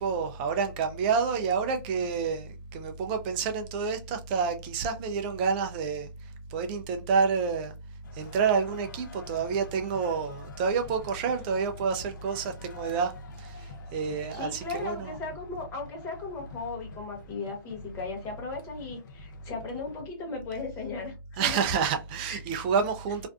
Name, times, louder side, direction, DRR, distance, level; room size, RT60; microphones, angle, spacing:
voice 1, 0.0-6.1 6.5-7.7 8.1-13.1 13.4-15.2 21.4-23.3, right 5 dB, 25° right, 0.3 m, -28 dB
sound 1, 8.0-20.0, left 5 dB, 60° left, 0.5 m, -49 dB
voice 2, 14.3-21.6 22.3-22.4, left 3 dB, 25° left, 1.0 m, -37 dB
2.5 x 2.2 x 2.4 m
hypercardioid pair, 135°, 12 cm